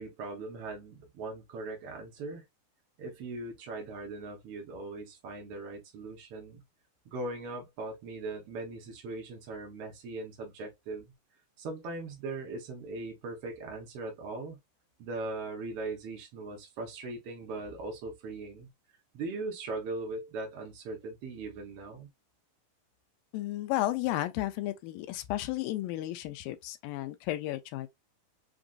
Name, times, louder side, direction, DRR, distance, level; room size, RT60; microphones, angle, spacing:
voice 1, 0.0-2.4 3.0-6.6 7.0-11.1 11.6-14.6 15.0-18.7 19.1-22.1, right 3 dB, 75° right, 1.3 m, -39 dB
voice 2, 23.3-27.9, left 15 dB, 80° left, 2.2 m, -33 dB
6.0 x 2.5 x 2.4 m
omnidirectional pair, 4.4 m